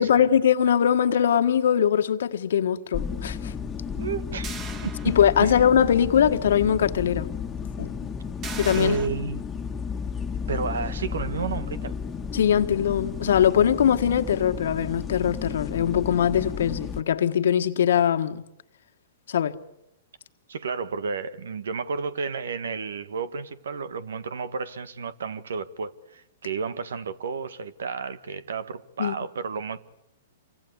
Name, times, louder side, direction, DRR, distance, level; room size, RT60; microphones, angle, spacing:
voice 1, 0.0-3.5 5.0-7.3 7.8-8.1 8.6-9.0 12.3-18.4 19.3-19.5 29.0-29.1, left 9 dB, 70° left, 1.6 m, -21 dB
sound 1, 2.9-17.0, left 6 dB, 15° left, 1.7 m, -33 dB
voice 2, 4.0-4.5 4.8-5.1 5.4-5.6 8.7-9.4 10.5-12.0 20.5-29.8, right 5 dB, 75° right, 1.6 m, -31 dB
sound 2, 4.4-5.7 6.1-6.2 8.4-9.1, right 6 dB, 30° right, 3.3 m, -38 dB
28.5 x 24.5 x 8.3 m
hypercardioid pair, 120°, 0 cm